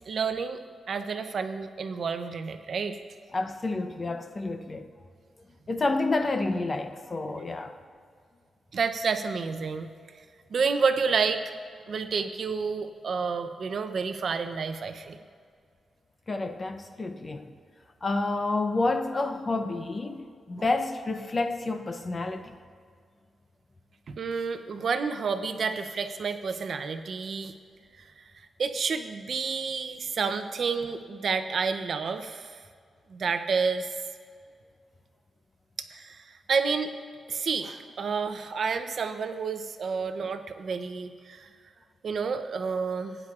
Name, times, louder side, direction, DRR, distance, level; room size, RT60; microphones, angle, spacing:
voice 1, 0.1-0.6 0.9-3.0 8.7-9.9 10.5-11.4 11.9-15.2 24.1-27.5 28.0-28.1 28.6-32.5 33.1-33.9 35.8-36.9 37.3-41.5 42.0-43.2, right 5 dB, 50° right, 9 dB, 0.6 m, -29 dB
voice 2, 3.3-4.9 5.7-7.8 16.3-17.5 18.0-22.6, left 2 dB, 25° left, 7 dB, 0.6 m, -29 dB
17.5 x 9.8 x 2.4 m, 2.1 s
wide cardioid pair, 160°, 0 cm